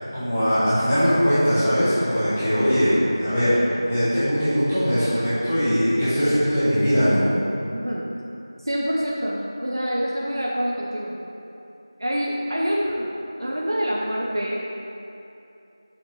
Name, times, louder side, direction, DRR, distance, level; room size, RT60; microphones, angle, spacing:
voice 1, 0.1-7.2, equal, 10° left, -15 dB, 1.3 m, -21 dB
voice 2, 7.7-8.1 8.6-11.2 12.0-13.1 13.4-14.8, equal, 60° right, -3 dB, 0.8 m, -26 dB
7.0 x 5.6 x 4.8 m, 2.8 s
figure-of-eight pair, 175°, 2 cm